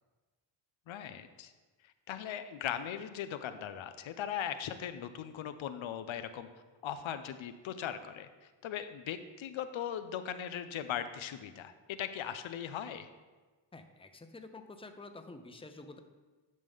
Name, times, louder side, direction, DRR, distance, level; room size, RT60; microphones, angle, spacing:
voice 1, 0.9-1.5 2.1-6.5 6.8-8.3 8.6-13.1, left 9 dB, 85° left, 10 dB, 0.6 m, -39 dB
voice 2, 13.7-16.0, left 2 dB, 10° left, 7 dB, 0.6 m, -49 dB
11.0 x 5.3 x 3.5 m, 1.3 s
cardioid pair, 75°, 46 cm